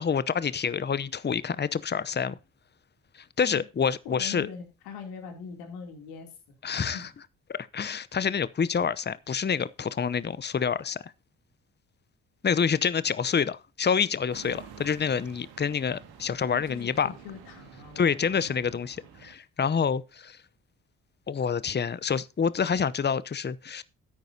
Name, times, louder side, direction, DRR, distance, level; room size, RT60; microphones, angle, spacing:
voice 1, 0.0-2.4 3.4-4.5 6.6-7.1 7.5-11.1 12.4-17.1 18.0-20.4 21.3-23.8, left 6 dB, 25° left, 0.8 m, -27 dB
voice 2, 4.0-6.3 6.9-7.1 16.4-18.8, left 6 dB, 85° left, 3.1 m, -42 dB
sound 1, 14.3-19.3, right 8 dB, 75° right, 2.1 m, -49 dB
13.5 x 9.1 x 2.8 m
hypercardioid pair, 40°, 38 cm